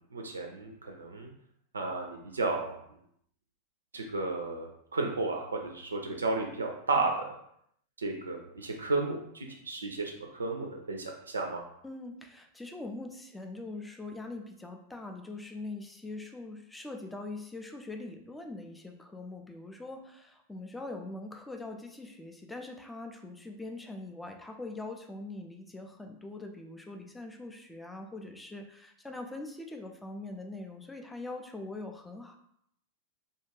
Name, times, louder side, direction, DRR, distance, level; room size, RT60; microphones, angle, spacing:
voice 1, 0.1-1.3 1.7-2.8 3.9-7.3 8.0-11.6, right 3 dB, 75° right, 2 dB, 0.4 m, -33 dB
voice 2, 11.8-32.4, left 2 dB, 5° left, 4 dB, 0.4 m, -42 dB
2.4 x 2.2 x 3.1 m, 0.72 s
figure-of-eight pair, 90°, 0 cm